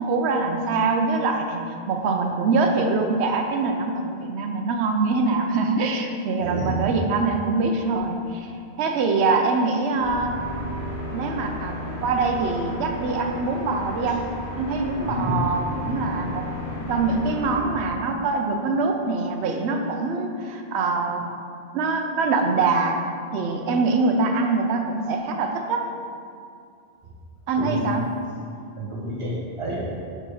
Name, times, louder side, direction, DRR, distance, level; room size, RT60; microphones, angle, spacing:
voice 1, 0.0-8.5 8.8-10.4 11.1-16.5 16.8-21.3 21.7-23.0 23.3-25.9 27.5-28.0, right 3 dB, 80° right, 3 dB, 0.9 m, -24 dB
voice 2, 6.4-6.9 15.1-15.4 27.6-27.8 28.8-29.8, right 1 dB, 30° right, -6 dB, 1.2 m, -29 dB
sound 1, 10.0-17.6, left 1 dB, 90° left, 1.8 m, -33 dB
6.5 x 3.1 x 4.8 m, 2.3 s
omnidirectional pair, 1.1 m